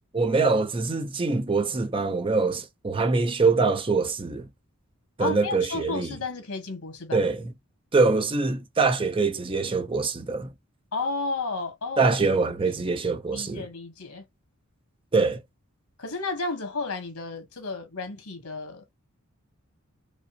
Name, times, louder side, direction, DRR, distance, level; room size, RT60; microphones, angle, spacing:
voice 1, 0.1-4.5 5.2-6.2 7.1-7.5 7.9-10.5 12.0-13.7 15.1-15.4, right 4 dB, 25° right, 0.5 m, -24 dB
voice 2, 5.2-7.3 10.9-12.1 13.3-14.2 16.0-18.8, left 3 dB, 90° left, 1.6 m, -32 dB
5.0 x 2.0 x 2.7 m
head